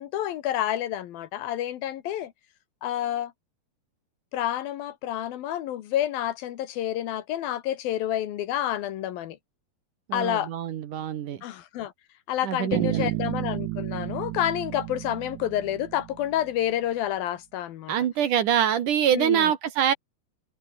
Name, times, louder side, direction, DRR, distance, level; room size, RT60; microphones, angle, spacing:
voice 1, 0.0-2.3 2.8-3.3 4.3-9.4 10.1-10.5 11.4-11.9 12.3-17.9 19.1-19.5, left 12 dB, 70° left, 2.9 m, -29 dB
voice 2, 10.1-11.4 12.4-13.1 17.9-19.9, right 9 dB, 60° right, 2.6 m, -25 dB
Bass guitar, 12.7-16.5, right 17 dB, 90° right, 3.0 m, -32 dB
omnidirectional pair, 4.6 m